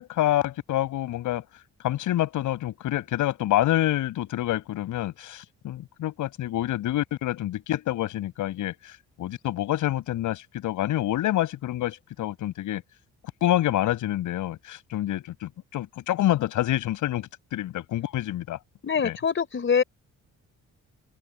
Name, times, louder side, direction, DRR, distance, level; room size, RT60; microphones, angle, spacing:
voice 1, 0.0-1.4 1.8-12.8 13.4-18.6 19.0-19.2, left 14 dB, 85° left, 6.4 m, -27 dB
voice 2, 18.8-19.8, left 6 dB, 40° left, 3.7 m, -24 dB
cardioid pair, 90°, 30 cm